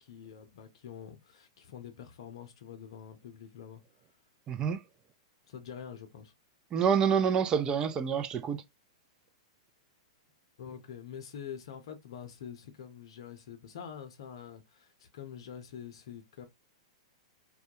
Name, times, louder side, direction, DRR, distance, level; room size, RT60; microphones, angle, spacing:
voice 1, 0.0-3.8 5.5-6.3 10.6-16.5, left 8 dB, 65° left, 0.6 m, -46 dB
voice 2, 4.5-4.8 6.7-8.6, right 7 dB, 25° right, 0.4 m, -27 dB
2.2 x 2.1 x 2.7 m
hypercardioid pair, 125°, 3 cm